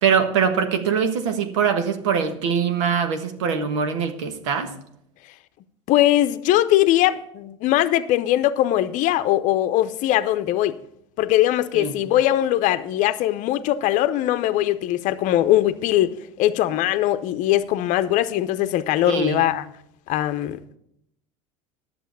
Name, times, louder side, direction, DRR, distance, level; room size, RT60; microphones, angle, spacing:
voice 1, 0.0-4.7 11.7-12.0 19.0-19.4, right 6 dB, 85° right, 1.4 m, -23 dB
voice 2, 5.9-10.7 11.2-19.6 20.1-20.8, left 13 dB, 55° left, 0.7 m, -21 dB
10.5 x 6.8 x 6.8 m
supercardioid pair, 95°, 15 cm